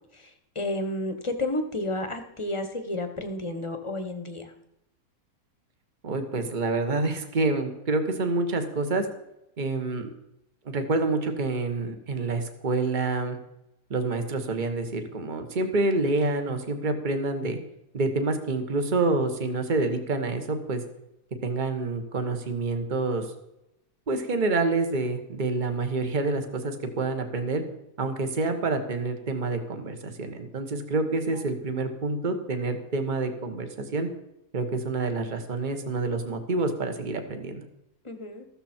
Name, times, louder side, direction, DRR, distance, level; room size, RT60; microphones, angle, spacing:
voice 1, 0.1-4.5 31.3-31.4 38.0-38.5, left 1 dB, 20° left, 7 dB, 1.2 m, -31 dB
voice 2, 6.0-9.1 9.6-10.1 10.6-13.4 13.9-17.6 17.9-20.8 21.4-23.2 24.1-27.6 28.0-34.1 34.5-37.6, right 3 dB, 30° right, 6 dB, 1.4 m, -27 dB
14.5 x 13.0 x 4.5 m, 0.88 s
omnidirectional pair, 1.7 m